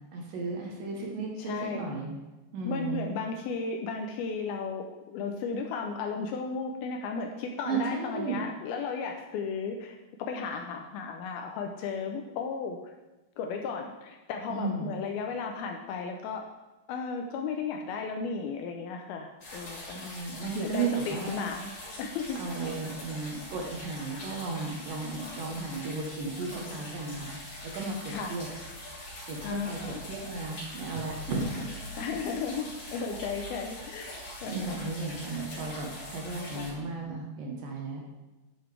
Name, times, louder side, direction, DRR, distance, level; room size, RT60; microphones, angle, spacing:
voice 1, 0.1-2.2 2.5-3.2 7.7-8.4 14.5-14.9 19.9-21.5 22.4-28.5 29.3-31.7 34.5-38.0, right 3 dB, 65° right, -1 dB, 2.5 m, -34 dB
voice 2, 1.4-1.9 2.6-12.9 13.4-16.5 16.9-20.0 20.6-21.6 22.0-22.4 28.1-28.3 29.4-30.0 32.0-34.9 36.5-36.7, left 5 dB, 80° left, 3 dB, 2.3 m, -35 dB
sound 1, 19.4-36.7, left 1 dB, 50° left, 4.5 m, -43 dB
11.0 x 7.1 x 3.3 m, 1.1 s
omnidirectional pair, 4.8 m